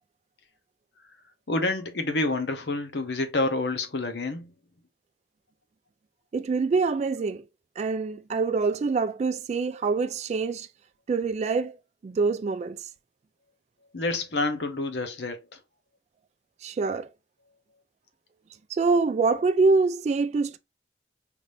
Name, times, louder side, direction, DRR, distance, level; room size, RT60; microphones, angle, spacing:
voice 1, 1.5-4.5 13.9-15.4, left 2 dB, 75° left, 0.9 m, -28 dB
voice 2, 6.3-7.4 7.8-10.7 11.1-11.8 12.0-12.8 16.6-17.1 18.7-20.6, right 4 dB, 40° right, 0.3 m, -25 dB
5.0 x 3.4 x 2.6 m
head